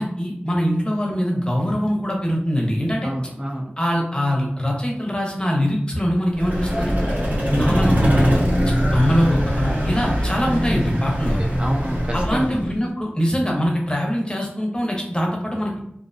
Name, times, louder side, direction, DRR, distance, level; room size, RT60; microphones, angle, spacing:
voice 1, 0.0-3.1 3.8-6.9 7.5-8.4 8.9-11.4 12.1-15.7, equal, 25° left, 0 dB, 0.7 m, -22 dB
voice 2, 3.0-3.7 11.2-12.7, equal, 30° right, 0 dB, 0.4 m, -28 dB
Vehicle, 6.3-12.8, equal, 50° right, 0.8 m, -22 dB
2.5 x 2.0 x 2.5 m, 0.73 s
wide cardioid pair, 50°, 4 cm